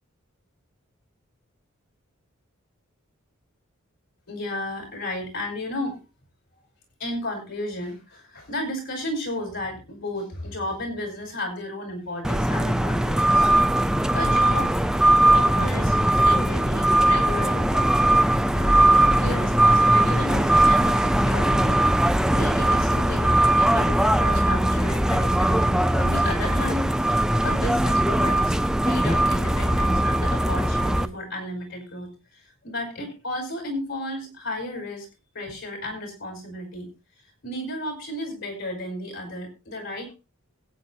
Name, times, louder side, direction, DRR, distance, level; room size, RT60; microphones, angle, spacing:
voice 1, 4.3-6.0 7.0-13.5 14.1-14.7 15.3-18.0 18.5-21.8 22.3-26.9 27.4-28.5 28.8-35.1 35.3-36.9 37.4-40.1, left 1 dB, 65° left, 3 dB, 5.6 m, -33 dB
sound 1, 12.2-31.1, right 1 dB, 5° right, 0.6 m, -20 dB
21.0 x 9.2 x 2.9 m, 0.28 s
head